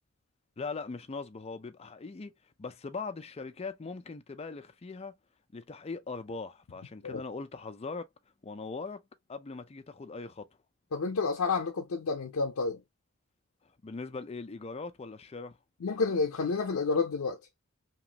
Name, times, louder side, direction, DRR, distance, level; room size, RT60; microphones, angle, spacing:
voice 1, 0.6-2.3 2.6-5.1 5.5-8.1 8.4-9.0 9.3-10.4 13.8-15.6, left 4 dB, 30° left, 0.4 m, -40 dB
voice 2, 10.9-12.8 15.8-17.4, left 4 dB, 85° left, 0.5 m, -29 dB
3.0 x 2.4 x 2.8 m
head